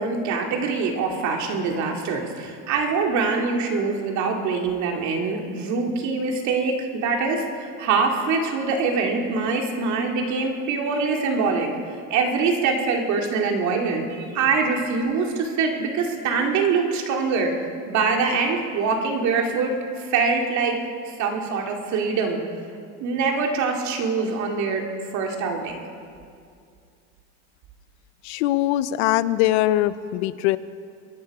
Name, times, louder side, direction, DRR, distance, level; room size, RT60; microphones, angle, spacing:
voice 1, 0.0-11.7 12.1-17.6 17.9-20.8 21.2-22.4 23.0-24.9 25.1-25.8, right 4 dB, 60° right, 2 dB, 2.4 m, -24 dB
voice 2, 28.2-30.6, left 14 dB, 90° left, 16 dB, 0.6 m, -22 dB
23.0 x 10.5 x 4.8 m, 2.3 s
supercardioid pair, 115°, 32 cm